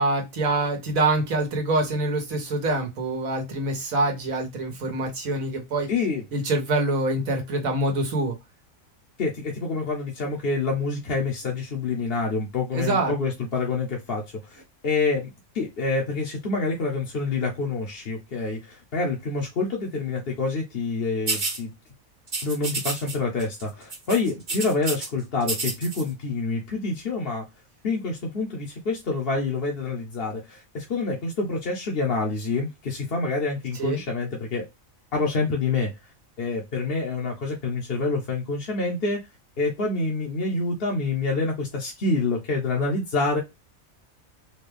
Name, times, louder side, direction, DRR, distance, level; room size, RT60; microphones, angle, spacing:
voice 1, 0.0-5.9 6.3-8.4 12.7-13.1 33.8-34.0, right 2 dB, 80° right, 4 dB, 1.5 m, -25 dB
voice 2, 5.9-6.2 9.2-21.7 22.4-27.5 27.8-34.6 35.1-35.9 36.4-39.2 39.6-43.4, left 3 dB, 50° left, -1 dB, 0.9 m, -27 dB
sound 1, 21.3-21.6 22.3-23.1 23.4-23.6 23.9-25.1 25.4-26.0, right 3 dB, 40° right, 1.1 m, -29 dB
4.2 x 2.3 x 3.3 m, 0.21 s
omnidirectional pair, 1.4 m